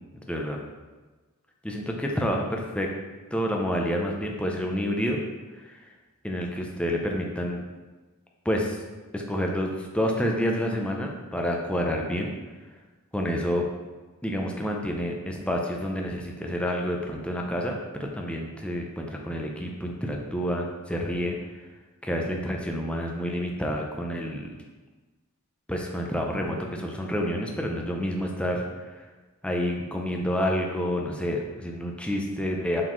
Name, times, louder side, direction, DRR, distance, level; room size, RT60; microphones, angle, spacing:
voice 1, 0.3-0.6 1.6-2.9 3.3-5.2 5.6-5.8 6.2-7.6 8.4-8.8 9.1-12.3 13.1-13.7 14.2-21.4 22.0-24.5 25.7-28.6 29.4-32.8, equal, 5° left, 0 dB, 0.6 m, -28 dB
7.5 x 4.1 x 3.1 m, 1.3 s
head